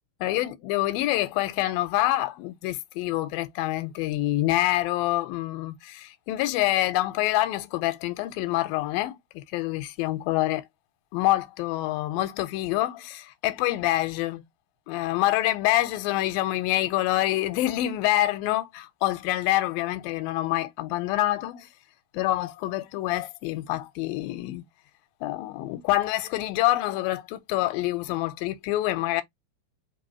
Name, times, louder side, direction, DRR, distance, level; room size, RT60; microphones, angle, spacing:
voice 1, 0.2-10.6 11.1-14.4 14.9-21.7 22.1-24.6 25.2-29.2, left 16 dB, 85° left, 2.4 m, -26 dB
5.4 x 2.8 x 2.8 m
omnidirectional pair, 4.2 m